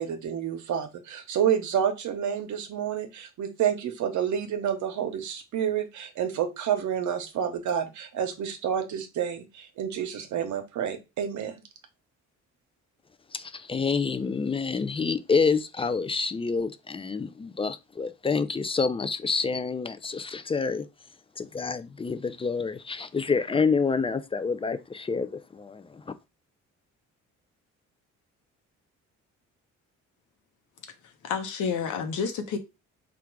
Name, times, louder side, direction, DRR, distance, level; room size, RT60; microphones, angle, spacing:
voice 1, 0.0-11.5, right 8 dB, 75° right, 0.9 m, -29 dB
voice 2, 13.3-20.9 21.4-26.1, left 5 dB, 20° left, 0.3 m, -28 dB
voice 3, 31.0-32.6, left 6 dB, 75° left, 0.9 m, -30 dB
3.6 x 2.4 x 4.5 m
cardioid pair, 90°, 30 cm